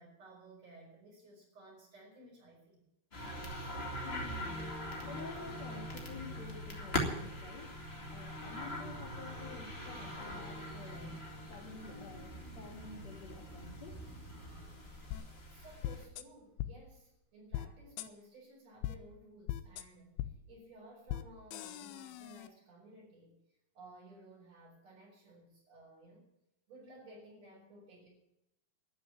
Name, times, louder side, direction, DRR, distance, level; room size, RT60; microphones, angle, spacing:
voice 1, 0.0-2.9 15.5-20.1 20.5-23.4 23.7-26.3 26.7-28.1, right 2 dB, 40° right, -7 dB, 6.6 m, -56 dB
sound 1, 3.1-16.0, equal, 25° left, 1.3 m, -42 dB
voice 2, 4.0-4.7 5.0-7.7 8.1-11.2 11.5-14.0, left 4 dB, 45° left, 0 dB, 3.2 m, -50 dB
sound 2, 7.3-16.4, right 1 dB, 60° right, 5.0 m, -54 dB
sound 3, 15.1-15.2 15.8-16.2 16.6-16.7 17.5-17.7 18.0-18.1 18.8-18.9 19.5-19.8 20.2-20.3 21.1-21.2 21.5-22.5, left 13 dB, 75° left, 2.3 m, -39 dB
12.5 x 9.6 x 9.5 m, 0.84 s
omnidirectional pair, 4.8 m